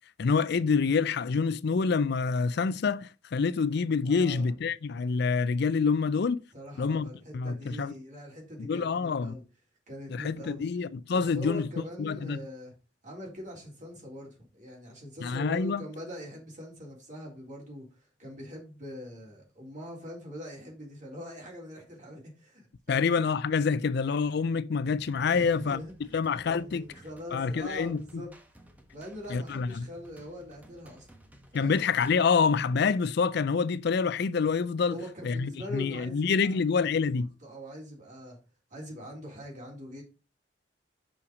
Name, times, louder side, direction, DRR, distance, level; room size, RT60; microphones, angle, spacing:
voice 1, 0.2-6.4 6.8-7.0 7.3-7.9 8.6-9.3 10.1-11.7 12.0-12.4 15.2-15.8 22.9-25.8 26.1-26.9 27.3-28.2 29.3-29.9 31.5-35.0 35.2-37.3, left 5 dB, 60° left, 0.4 m, -27 dB
voice 2, 4.0-4.5 6.5-9.4 9.9-10.7 11.1-12.7 13.0-17.9 18.2-23.1 25.3-26.2 26.4-28.3 28.9-31.1 31.5-31.8 34.9-37.0 37.4-38.4 38.7-40.0, equal, 45° right, 3.8 m, -43 dB
sound 1, 24.9-32.2, right 1 dB, 10° right, 1.2 m, -56 dB
6.4 x 5.7 x 5.2 m
head